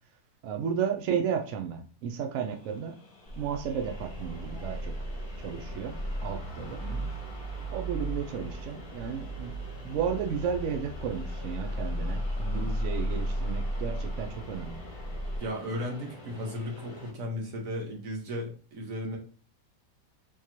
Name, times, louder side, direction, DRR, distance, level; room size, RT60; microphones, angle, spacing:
voice 1, 0.4-3.0 3.4-4.9 5.4-5.9 6.2-6.8 7.7-9.5 9.8-14.8, right 7 dB, 75° right, 5 dB, 0.7 m, -33 dB
sound 1, 2.3-17.1, left 2 dB, 40° left, 1.0 m, -48 dB
sound 2, 3.3-15.4, right 1 dB, 40° right, 0.4 m, -35 dB
voice 2, 15.4-19.2, equal, 55° right, 0 dB, 1.3 m, -35 dB
3.6 x 3.1 x 2.8 m, 0.40 s
omnidirectional pair, 1.8 m